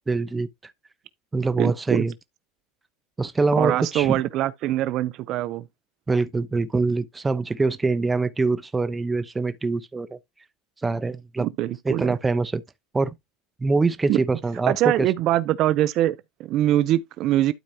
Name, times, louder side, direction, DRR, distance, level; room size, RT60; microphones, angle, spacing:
voice 1, 0.1-0.7 1.3-2.1 3.2-4.2 6.1-10.2 10.8-11.5 11.8-12.6 12.9-13.1 13.6-14.8, right 3 dB, 15° right, 0.8 m, -24 dB
voice 2, 1.6-2.0 3.6-5.6 11.4-12.1 14.1-14.2 14.7-17.5, right 13 dB, 55° right, 0.5 m, -23 dB
12.0 x 4.5 x 2.8 m
supercardioid pair, 105°, 0 cm